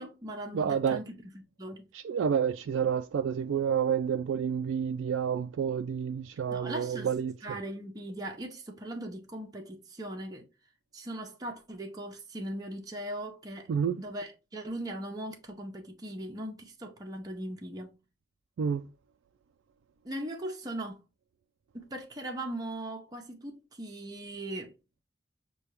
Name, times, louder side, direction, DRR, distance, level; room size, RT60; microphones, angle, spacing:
voice 1, 0.0-1.9 6.5-7.1 7.4-10.5 10.9-13.7 14.0-17.9 20.0-21.0 21.7-24.7, right 1 dB, 20° right, 0.6 m, -39 dB
voice 2, 0.5-1.0 2.0-7.3 13.7-14.0 18.6-18.9, right 7 dB, 85° right, 0.3 m, -29 dB
6.7 x 2.3 x 3.1 m
head